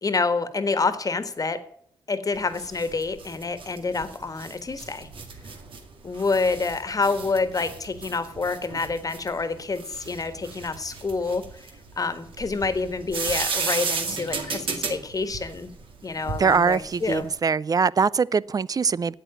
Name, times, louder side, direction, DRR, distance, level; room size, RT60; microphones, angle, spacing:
voice 1, 0.0-1.6 2.1-5.1 6.0-11.6 12.0-15.7 16.0-17.2, left 4 dB, 40° left, 1.5 m, -27 dB
sound 1, 2.3-17.4, right 4 dB, 70° right, 2.1 m, -34 dB
voice 2, 16.4-19.1, right 5 dB, 40° right, 0.4 m, -22 dB
8.8 x 8.2 x 9.1 m
supercardioid pair, 50°, 9 cm